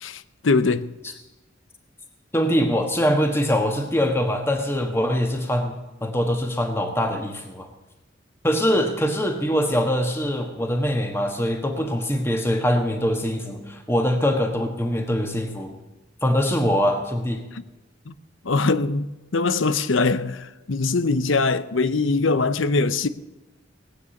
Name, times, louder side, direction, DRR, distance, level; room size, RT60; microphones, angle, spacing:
voice 1, 0.0-0.9 17.5-17.6 18.1-18.2 18.4-23.1, left 3 dB, 90° left, 0.8 m, -22 dB
voice 2, 2.3-7.7 8.4-15.7 16.2-17.4, equal, 15° left, 1.4 m, -23 dB
19.0 x 9.6 x 7.2 m
head